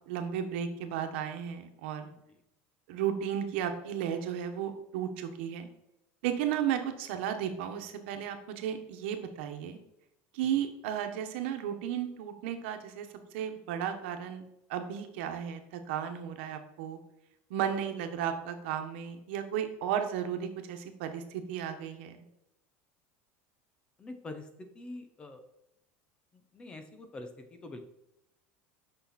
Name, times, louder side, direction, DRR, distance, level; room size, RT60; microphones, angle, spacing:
voice 1, 0.1-2.1 2.9-5.7 6.2-9.8 10.3-13.1 13.3-14.4 14.7-17.0 17.5-22.2, right 9 dB, 75° right, 6 dB, 1.2 m, -34 dB
voice 2, 24.0-25.4 26.3-27.8, left 2 dB, 15° left, 7 dB, 0.7 m, -45 dB
8.4 x 5.8 x 4.2 m, 0.84 s
cardioid pair, 175°, 6 cm